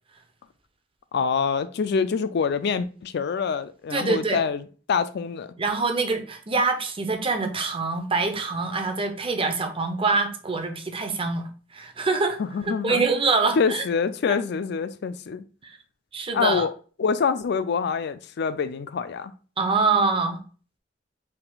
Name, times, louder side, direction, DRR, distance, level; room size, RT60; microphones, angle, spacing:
voice 1, 1.1-4.6 4.9-5.5 12.4-13.1 13.6-15.4 16.3-16.7 17.0-19.3, left 5 dB, 60° left, 0.4 m, -25 dB
voice 2, 3.9-4.4 5.6-12.4 12.7-13.8 14.3-14.4 15.6-15.8 16.1-16.7 19.6-20.4, right 4 dB, 30° right, 0.7 m, -25 dB
5.7 x 3.6 x 2.3 m
head